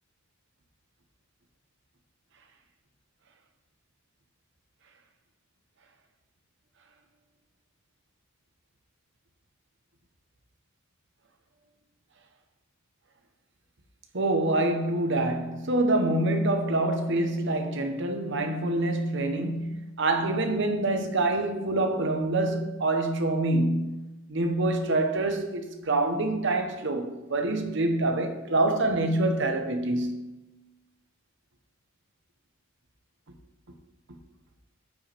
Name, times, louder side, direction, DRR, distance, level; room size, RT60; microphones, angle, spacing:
voice 1, 14.1-24.0 24.3-30.3, right 2 dB, 65° right, 1.1 m, -26 dB
9.4 x 7.8 x 3.5 m
head